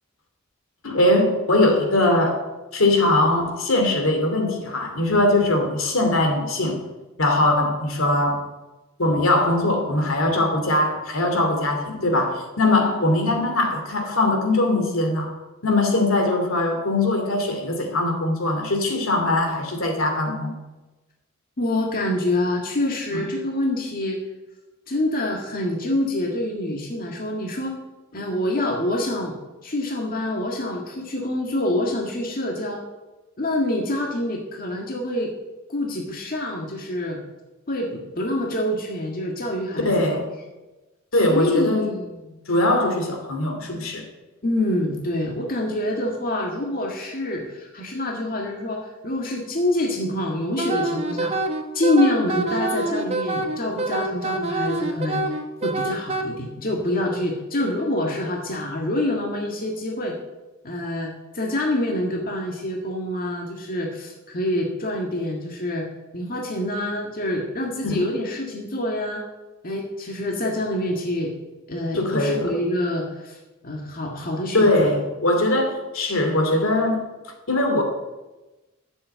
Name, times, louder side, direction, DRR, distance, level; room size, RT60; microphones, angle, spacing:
voice 1, 0.8-2.4 2.7-6.8 7.2-8.4 9.0-15.3 15.6-20.5 23.1-23.2 39.8-40.3 41.1-41.9 42.5-44.0 67.9-68.1 71.9-72.5 74.5-77.0 77.5-77.8, left 1 dB, 75° left, 4 dB, 2.6 m, -21 dB
voice 2, 21.6-24.2 24.9-27.8 28.1-29.3 29.6-32.8 33.4-35.3 35.7-37.2 37.7-40.2 41.3-42.4 44.4-51.3 51.7-55.2 55.6-60.2 60.6-65.9 66.1-69.2 69.6-71.3 71.7-74.9, left 1 dB, 45° left, 0 dB, 1.7 m, -26 dB
Wind instrument woodwind instrument, 50.6-56.2, right 2 dB, 30° right, 1.2 m, -26 dB
11.5 x 7.9 x 8.1 m, 1.1 s
head